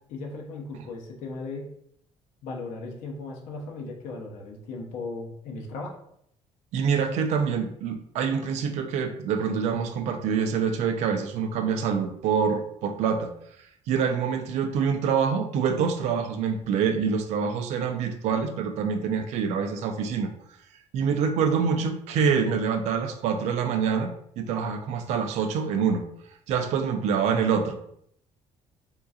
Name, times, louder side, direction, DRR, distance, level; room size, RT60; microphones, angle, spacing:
voice 1, 0.1-1.7 2.4-6.0, left 3 dB, 85° left, 0 dB, 0.7 m, -37 dB
voice 2, 6.7-13.3 13.9-20.3 20.9-26.1 26.5-27.8, right 6 dB, 65° right, 6 dB, 0.4 m, -26 dB
3.6 x 2.7 x 2.4 m, 0.71 s
cardioid pair, 175°, 12 cm